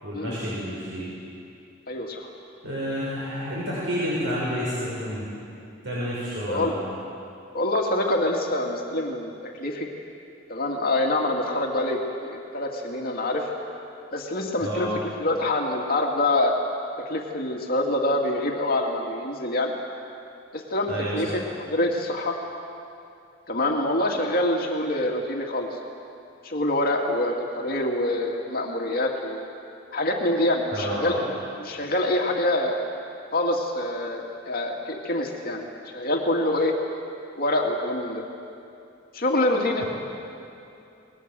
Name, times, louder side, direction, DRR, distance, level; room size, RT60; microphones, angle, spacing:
voice 1, 0.0-1.1 2.6-5.3 5.8-6.8 14.6-14.9 20.9-21.3 30.7-31.2 39.8-39.9, equal, 75° right, -6 dB, 6.2 m, -30 dB
voice 2, 1.9-2.3 6.5-6.7 7.5-9.3 9.6-9.9 10.5-13.5 14.1-16.5 17.1-19.7 20.5-22.4 23.5-25.8 26.4-29.5 29.9-32.8 33.3-35.6 35.9-36.7 37.4-38.2 39.1-39.8, left 1 dB, 50° left, 0 dB, 2.5 m, -25 dB
29.0 x 21.0 x 7.7 m, 2.6 s
head